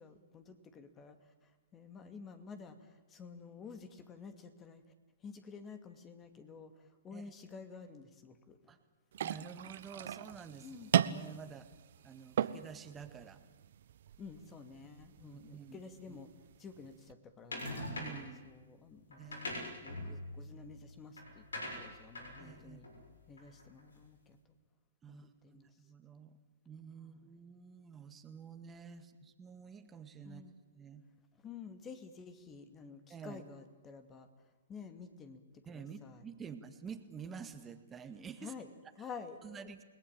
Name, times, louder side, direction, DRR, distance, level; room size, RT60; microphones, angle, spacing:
voice 1, 0.0-4.8 5.2-8.8 10.6-10.9 14.2-16.3 16.6-17.9 18.4-22.9 23.3-24.4 25.1-25.7 27.0-27.4 30.2-30.5 31.4-35.4 35.7-36.3 38.4-39.7, left 5 dB, 20° left, 8 dB, 2.4 m, -51 dB
sound 1, 9.1-17.1, right 10 dB, 60° right, 1.1 m, -38 dB
voice 2, 9.2-10.7 11.0-11.7 12.0-13.4 15.2-15.8 16.1-16.2 17.8-18.5 19.2-19.4 22.4-22.9 25.0-26.4 26.7-30.4 30.7-31.0 33.1-33.4 35.7-38.5 39.0-39.1 39.4-39.8, right 6 dB, 15° right, 8 dB, 1.9 m, -49 dB
sound 2, 17.5-18.4 19.1-23.8, left 1 dB, 90° left, 6.5 m, -43 dB
29.0 x 19.5 x 9.1 m, 1.2 s
hypercardioid pair, 130°, 0 cm